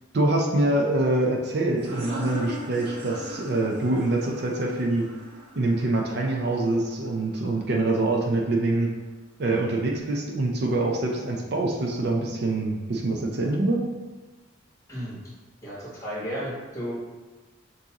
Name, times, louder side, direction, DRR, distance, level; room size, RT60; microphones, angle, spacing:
voice 1, 0.1-5.1 5.6-8.9 9.4-13.8, right 2 dB, 55° right, 0 dB, 0.5 m, -25 dB
sound 1, 1.8-7.1, equal, 75° right, 1.2 m, -39 dB
voice 2, 14.9-15.2 15.6-16.9, equal, 15° left, -8 dB, 1.3 m, -33 dB
6.2 x 2.7 x 2.8 m, 1.2 s
head